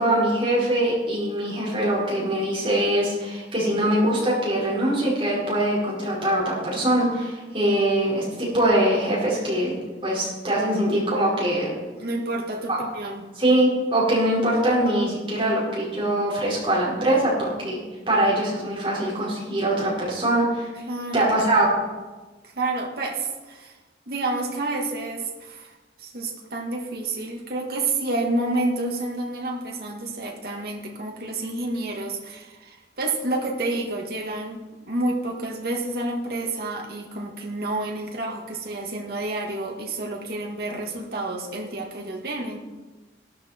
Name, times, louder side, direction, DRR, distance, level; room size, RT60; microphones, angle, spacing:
voice 1, 0.0-9.8 10.0-11.7 12.7-12.8 13.3-17.8 18.1-20.7 21.1-21.8, right 1 dB, 30° right, -6 dB, 4.8 m, -22 dB
voice 2, 12.0-13.3 20.9-21.3 22.6-23.7 24.1-25.7 26.0-34.6 34.9-42.6, right 2 dB, 55° right, 0 dB, 1.8 m, -29 dB
13.0 x 12.5 x 4.4 m, 1.3 s
head